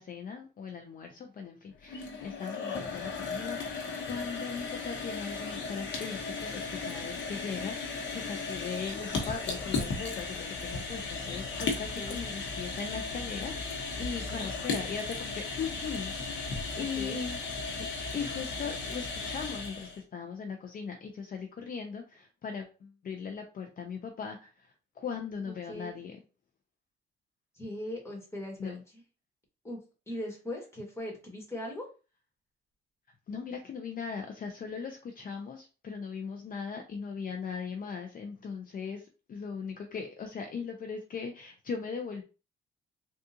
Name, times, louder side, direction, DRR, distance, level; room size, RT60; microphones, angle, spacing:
voice 1, 0.0-17.5 17.8-26.2 28.6-28.8 33.3-42.2, left 6 dB, 45° left, 4 dB, 0.5 m, -39 dB
sound 1, 1.8-20.0, left 4 dB, 70° left, 1.0 m, -36 dB
voice 2, 16.8-17.2 25.7-25.9 27.6-29.0 29.6-29.8 30.1-31.9, left 1 dB, 15° left, -1 dB, 1.5 m, -39 dB
3.6 x 2.4 x 2.8 m, 0.33 s
cardioid pair, 90°, 20 cm